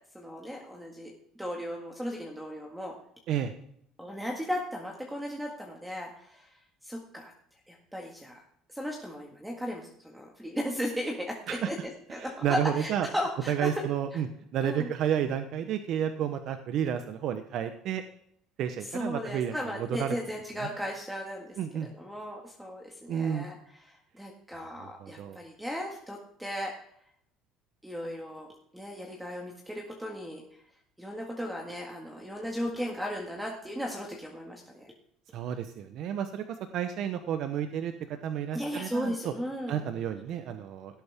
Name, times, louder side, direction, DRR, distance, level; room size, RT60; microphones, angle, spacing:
voice 1, 0.1-1.1 1.4-2.9 4.0-6.5 6.8-7.3 7.7-8.4 8.7-13.7 14.1-14.2 14.6-14.9 18.9-21.6 21.8-26.7 27.8-28.5 28.7-30.4 31.0-34.9 38.5-39.8, equal, 5° right, 0 dB, 2.0 m, -36 dB
voice 2, 12.1-13.1 13.5-14.3 14.5-18.0 18.6-20.2 21.6-21.9 23.1-23.5 24.8-25.4 35.3-36.4 36.7-37.9 38.2-39.3 39.7-41.0, right 9 dB, 60° right, 8 dB, 1.0 m, -31 dB
17.0 x 8.2 x 3.7 m, 0.69 s
supercardioid pair, 110°, 0 cm